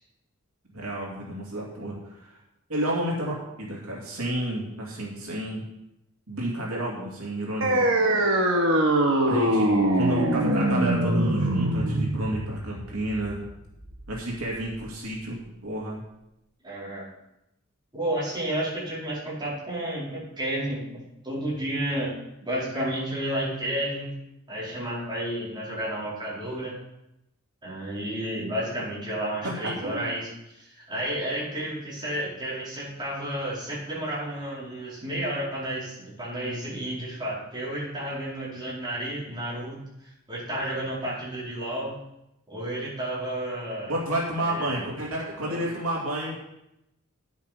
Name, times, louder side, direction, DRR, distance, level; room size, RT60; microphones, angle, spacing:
voice 1, 0.7-2.4 2.7-5.6 6.3-7.8 9.3-13.4 14.1-16.0 29.4-30.2 43.9-46.4, right 1 dB, 80° right, -3 dB, 2.6 m, -31 dB
sound 1, 7.6-14.6, right 1 dB, 65° right, 1.6 m, -23 dB
voice 2, 9.6-9.9 16.6-17.1 17.9-24.1 24.5-26.8 27.6-39.8 40.3-42.0 42.5-43.9 44.4-44.8 45.4-45.6, right 1 dB, 20° right, -8 dB, 4.4 m, -31 dB
9.9 x 8.0 x 5.1 m, 0.87 s
head